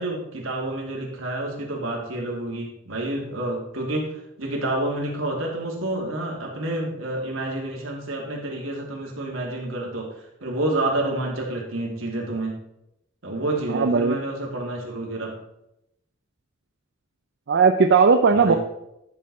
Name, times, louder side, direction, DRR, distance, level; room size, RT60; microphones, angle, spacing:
voice 1, 0.0-12.6 13.2-15.4 18.3-18.6, right 2 dB, 80° right, -1 dB, 2.6 m, -29 dB
voice 2, 13.7-14.2 17.5-18.5, right 5 dB, 55° right, 6 dB, 0.6 m, -17 dB
11.5 x 6.5 x 4.3 m, 0.83 s
head